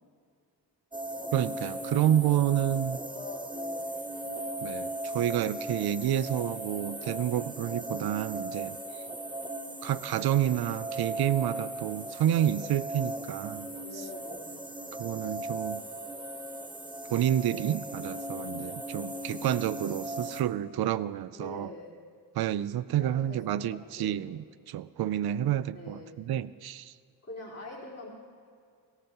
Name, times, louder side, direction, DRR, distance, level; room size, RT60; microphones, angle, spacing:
sound 1, 0.9-20.4, right 1 dB, 10° right, 0.9 m, -37 dB
voice 1, 1.3-3.0 4.6-9.0 9.8-13.7 14.9-15.9 17.1-21.7 22.3-24.4 24.7-26.9, right 11 dB, 65° right, 17 dB, 0.5 m, -29 dB
voice 2, 2.0-2.7 3.1-3.9 13.8-14.5 21.3-21.9 23.0-23.4 23.7-24.3 25.7-26.2 27.3-28.1, left 3 dB, 40° left, -6 dB, 4.1 m, -44 dB
18.5 x 17.0 x 3.0 m, 2.2 s
wide cardioid pair, 95°, 41 cm